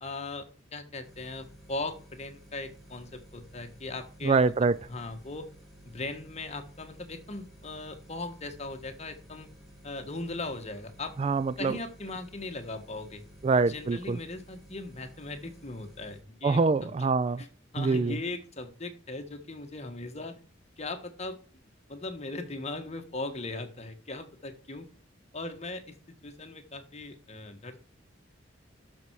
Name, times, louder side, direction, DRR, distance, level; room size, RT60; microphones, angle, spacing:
voice 1, 0.0-4.4 4.9-5.5 5.8-9.5 9.8-11.1 11.6-13.2 13.6-16.9 17.4-17.5 17.7-20.4 20.8-21.4 21.9-24.9 25.3-27.8, left 2 dB, 35° left, 1.4 m, -39 dB
sound 1, 1.0-16.2, equal, ahead, 2.9 m, -54 dB
voice 2, 4.2-4.8 11.2-11.8 13.4-14.2 16.4-17.4 17.8-18.2, right 4 dB, 30° right, 0.3 m, -25 dB
12.0 x 5.5 x 4.7 m
head